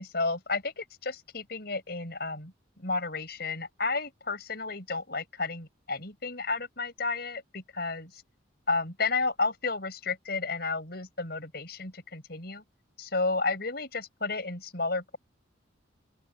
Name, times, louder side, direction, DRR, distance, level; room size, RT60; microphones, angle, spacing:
voice 1, 0.0-8.2 8.7-12.6 13.0-15.2, left 3 dB, 55° left, 5.6 m, -32 dB
open air
head